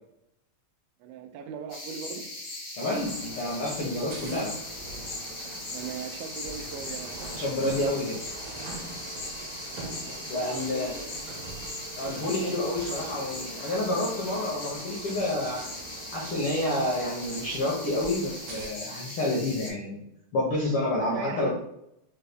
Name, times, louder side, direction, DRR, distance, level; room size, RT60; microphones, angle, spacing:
voice 1, 1.0-2.2 4.1-4.3 5.7-7.3 10.3-11.1 20.8-21.5, right 7 dB, 90° right, 6 dB, 2.0 m, -39 dB
sound 1, 1.7-19.7, left 2 dB, 55° left, 0.8 m, -39 dB
voice 2, 2.8-4.6 7.3-8.2 10.3-10.9 11.9-15.6 16.1-20.0 20.3-21.5, left 1 dB, 75° left, -4 dB, 1.2 m, -29 dB
sound 2, 2.9-18.7, right 3 dB, 70° right, 1.9 m, -43 dB
5.5 x 2.1 x 3.3 m, 0.79 s
omnidirectional pair, 3.4 m